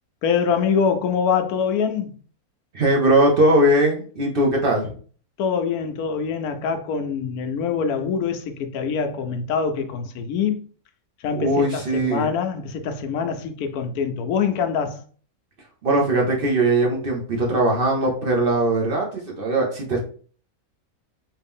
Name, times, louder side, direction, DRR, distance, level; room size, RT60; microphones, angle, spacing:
voice 1, 0.2-2.2 5.4-10.6 11.2-15.0, left 6 dB, 80° left, 1.1 m, -24 dB
voice 2, 2.7-4.9 11.4-12.3 15.8-20.0, right 1 dB, 50° right, 0.8 m, -20 dB
3.3 x 2.8 x 3.5 m
omnidirectional pair, 1.5 m